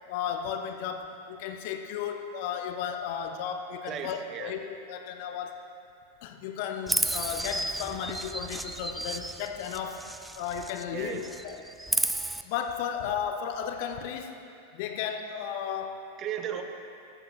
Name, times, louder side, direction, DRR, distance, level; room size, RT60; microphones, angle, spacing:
voice 1, 0.1-5.6 6.2-10.1 10.4-11.6 12.4-14.4 14.7-16.0, left 8 dB, 50° left, 6 dB, 0.5 m, -34 dB
voice 2, 3.9-4.5 10.9-11.3 16.2-16.6, right 9 dB, 30° right, 5 dB, 0.9 m, -35 dB
Chirp tweet, 6.9-10.9 11.2-12.4, right 2 dB, 5° right, 0.3 m, -32 dB
15.0 x 12.0 x 2.3 m, 2.6 s
figure-of-eight pair, 90°, 0 cm